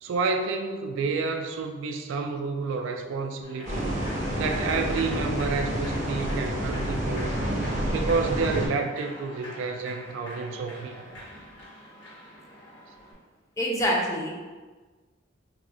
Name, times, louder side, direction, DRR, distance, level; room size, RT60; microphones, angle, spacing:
voice 1, 0.0-4.0 4.4-7.4 7.9-11.0, right 4 dB, 80° right, 5 dB, 0.3 m, -29 dB
Human voice / Clapping / Cheering, 3.4-13.1, equal, 70° left, 0.9 m, -44 dB
sound 1, 3.7-8.7, right 1 dB, 40° right, 0.6 m, -29 dB
voice 2, 13.6-14.3, equal, 15° left, -2 dB, 0.4 m, -25 dB
2.4 x 2.1 x 3.7 m, 1.3 s
head